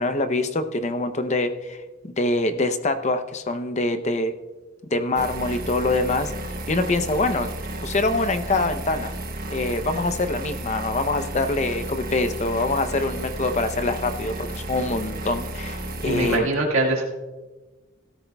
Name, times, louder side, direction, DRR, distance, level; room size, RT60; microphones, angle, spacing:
voice 1, 0.0-4.3 4.9-7.5 7.8-9.1 9.5-16.5, left 2 dB, 35° left, 8 dB, 0.6 m, -25 dB
sound 1, 5.2-16.4, right 1 dB, 45° right, 1.2 m, -33 dB
voice 2, 16.1-17.1, right 2 dB, 75° right, -2 dB, 1.8 m, -23 dB
17.0 x 13.5 x 2.3 m, 1.2 s
head